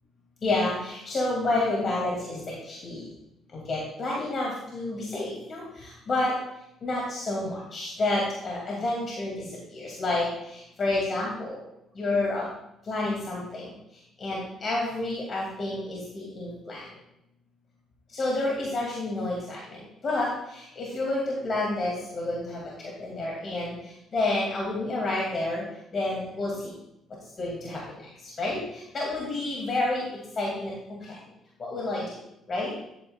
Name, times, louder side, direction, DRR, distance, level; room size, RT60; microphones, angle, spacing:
voice 1, 0.4-3.1 3.5-6.4 6.8-11.6 11.9-12.5 12.8-16.9 18.1-25.7 25.9-26.7 27.4-30.0 30.4-30.7 31.0-31.2 31.6-32.2 32.5-32.7, left 2 dB, 45° left, -4 dB, 2.5 m, -30 dB
11.0 x 9.1 x 2.4 m, 0.82 s
supercardioid pair, 70°, 0 cm